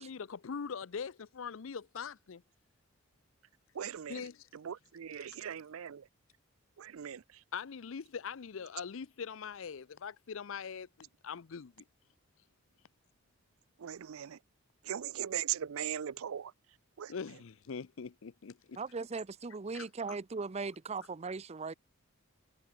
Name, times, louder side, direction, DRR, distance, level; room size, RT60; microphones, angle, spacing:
voice 1, 0.0-2.4 4.1-4.5 5.1-5.5 7.5-11.8 17.1-18.8 19.7-19.9, left 6 dB, 65° left, 0.5 m, -42 dB
voice 2, 3.8-4.1 4.6-6.0 6.8-7.2 13.8-14.4 14.9-16.5 17.0-17.1, right 10 dB, 85° right, 0.5 m, -39 dB
voice 3, 18.8-21.7, right 4 dB, 30° right, 0.5 m, -38 dB
head